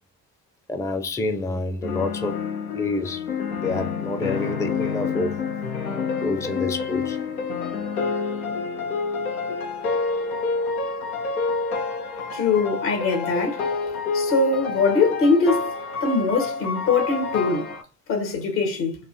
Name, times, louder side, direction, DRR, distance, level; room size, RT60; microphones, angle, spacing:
voice 1, 0.7-2.4 2.7-3.2 3.5-5.3 6.2-7.2, left 3 dB, 10° left, 0.5 m, -27 dB
sound 1, 1.8-17.8, left 4 dB, 90° left, 0.6 m, -28 dB
voice 2, 12.3-13.7 14.1-15.7 16.0-17.7 18.1-19.0, left 4 dB, 70° left, 1.5 m, -22 dB
4.0 x 2.5 x 2.7 m
figure-of-eight pair, 50°, 41 cm